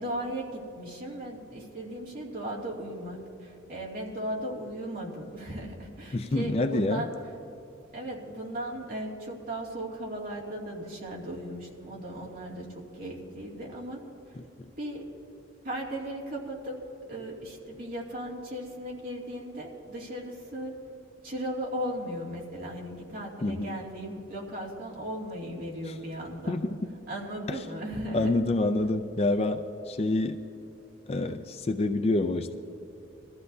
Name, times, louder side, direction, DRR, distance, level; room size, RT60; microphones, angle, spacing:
voice 1, 0.0-7.1 7.9-14.0 14.8-15.1 15.6-16.8 17.1-20.9 21.2-26.5 27.1-28.3, right 1 dB, 45° right, -3 dB, 2.5 m, -37 dB
voice 2, 6.1-7.1 14.4-14.7 23.4-23.8 26.5-26.8 27.5-27.6 28.1-30.4 31.1-32.6, left 2 dB, 30° left, 7 dB, 0.4 m, -27 dB
22.0 x 14.0 x 2.7 m, 2.9 s
head